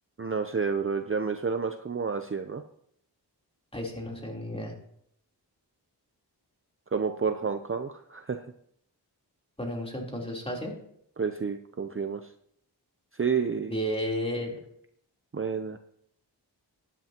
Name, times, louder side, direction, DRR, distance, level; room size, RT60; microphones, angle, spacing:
voice 1, 0.2-2.6 6.9-8.4 11.2-12.3 13.1-13.7 15.3-15.8, right 5 dB, 30° right, 7 dB, 0.7 m, -30 dB
voice 2, 3.7-4.7 9.6-10.7 13.7-14.6, equal, 15° left, -1 dB, 3.5 m, -32 dB
16.5 x 10.5 x 2.9 m, 0.70 s
wide cardioid pair, 60°, 41 cm